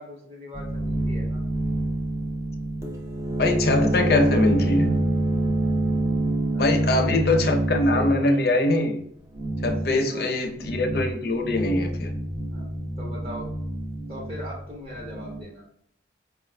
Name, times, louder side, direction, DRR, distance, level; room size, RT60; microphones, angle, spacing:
voice 1, 0.0-1.4 6.1-7.6 7.9-8.5 9.9-10.5 12.5-13.5 14.1-15.6, left 1 dB, 35° right, -3 dB, 0.9 m, -40 dB
sound 1, 0.5-8.2 9.3-9.9 10.5-11.1 11.4-15.4, right 1 dB, 15° right, 0.4 m, -27 dB
voice 2, 3.4-5.0 6.6-9.0 9.6-12.1, left 2 dB, 55° left, 4 dB, 0.5 m, -22 dB
4.6 x 2.4 x 3.2 m, 0.69 s
head